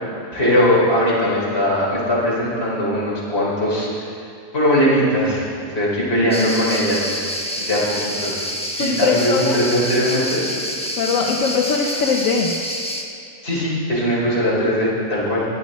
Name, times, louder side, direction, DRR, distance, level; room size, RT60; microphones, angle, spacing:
voice 1, 0.3-4.0 4.5-5.5 5.7-7.0 7.6-8.4 8.7-10.4 13.4-15.4, equal, 50° left, -7 dB, 4.0 m, -20 dB
sound 1, 6.3-13.0, equal, 5° left, 0.9 m, -27 dB
voice 2, 8.8-9.6 10.9-12.6, left 5 dB, 85° left, 1 dB, 1.2 m, -21 dB
21.0 x 9.2 x 4.1 m, 2.4 s
omnidirectional pair, 1.4 m